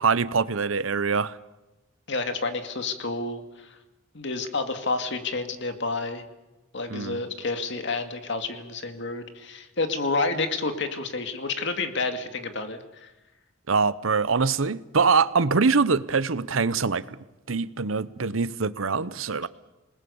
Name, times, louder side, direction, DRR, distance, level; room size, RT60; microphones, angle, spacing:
voice 1, 0.0-1.4 6.9-7.2 13.7-17.2 17.5-19.5, right 4 dB, 85° right, 0.9 m, -24 dB
voice 2, 2.1-3.8 4.1-6.2 6.7-13.1, left 3 dB, 60° left, 2.4 m, -29 dB
27.5 x 20.0 x 7.1 m
head